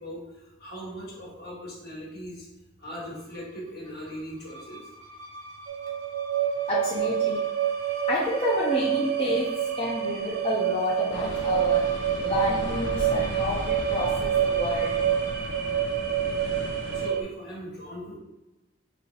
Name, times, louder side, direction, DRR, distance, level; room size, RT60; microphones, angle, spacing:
voice 1, 0.0-2.5 2.8-4.8 16.9-18.2, equal, 55° left, -4 dB, 1.5 m, -39 dB
sound 1, 3.0-15.6, equal, 85° right, 0.8 m, -45 dB
sound 2, 5.7-17.2, right 9 dB, 55° right, 0.4 m, -27 dB
voice 2, 6.7-7.4 8.1-11.9 12.2-15.0, left 1 dB, 30° left, -6 dB, 0.6 m, -29 dB
sound 3, 11.1-17.1, left 2 dB, 75° left, 0.6 m, -36 dB
5.4 x 3.1 x 2.8 m, 1.0 s
head